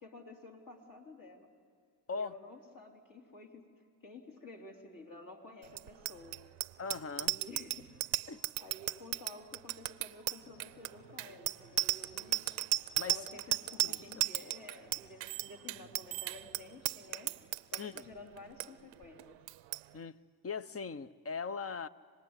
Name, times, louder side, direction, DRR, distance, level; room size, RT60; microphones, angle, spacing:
voice 1, 0.0-1.5 2.2-3.6 4.0-6.4 7.2-7.9 8.6-12.4 13.1-17.3 17.7-19.4, left 2 dB, 45° left, 3.7 m, -52 dB
Bicycle bell, 5.7-18.0 18.4-18.7 18.9-19.2 19.5-19.8, right 17 dB, 85° right, 0.7 m, -35 dB
voice 2, 6.8-7.4 8.3-8.4 13.0-13.2 13.8-14.0 17.8-18.0 19.9-21.9, left 5 dB, 30° left, 0.8 m, -40 dB
sound 1, 10.4-18.2, right 1 dB, 85° left, 6.4 m, -63 dB
26.0 x 19.5 x 9.8 m
cardioid pair, 75°, 44 cm